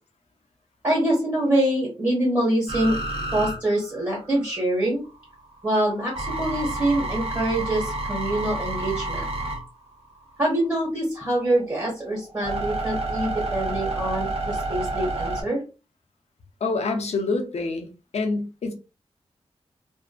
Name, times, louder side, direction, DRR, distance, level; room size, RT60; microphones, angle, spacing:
voice 1, 0.8-3.0 3.3-5.0 5.6-9.3 10.4-15.6, right 1 dB, 25° right, 1.5 m, -25 dB
sound 1, 2.7-4.6 5.0-10.6 11.2-15.4, right 2 dB, 65° right, 0.8 m, -29 dB
voice 2, 16.6-17.9 18.1-18.7, left 3 dB, 90° left, 0.6 m, -26 dB
2.6 x 2.4 x 2.3 m
wide cardioid pair, 115°, 11 cm